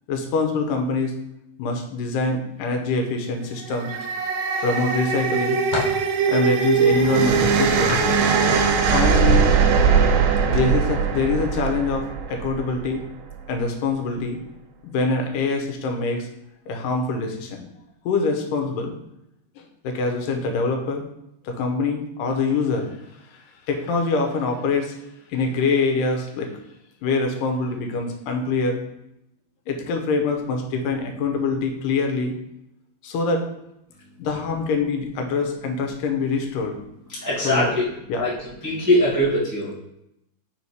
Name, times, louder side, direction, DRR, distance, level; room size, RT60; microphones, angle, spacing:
voice 1, 0.1-1.1 1.6-3.9 4.6-5.6 6.3-8.0 8.9-9.5 10.4-13.0 13.5-14.4 14.8-16.3 16.7-17.7 18.1-18.9 19.6-21.0 21.4-22.9 23.3-25.0 25.3-26.5 27.0-28.8 29.7-32.3 33.0-33.5 34.2-36.7 37.4-37.8 38.1-38.3, left 4 dB, 90° left, 3 dB, 2.5 m, -24 dB
sound 1, 3.6-12.9, right 6 dB, 85° right, 2.3 m, -20 dB
sound 2, 3.9-4.7 5.2-6.1 7.4-8.9 9.3-9.6 10.4-10.6 11.0-11.2, left 4 dB, 55° left, 2.0 m, -31 dB
voice 2, 37.2-37.7 38.2-38.3 38.6-39.7, left 1 dB, 10° right, -8 dB, 0.8 m, -21 dB
5.0 x 4.2 x 4.6 m, 0.83 s
omnidirectional pair, 3.7 m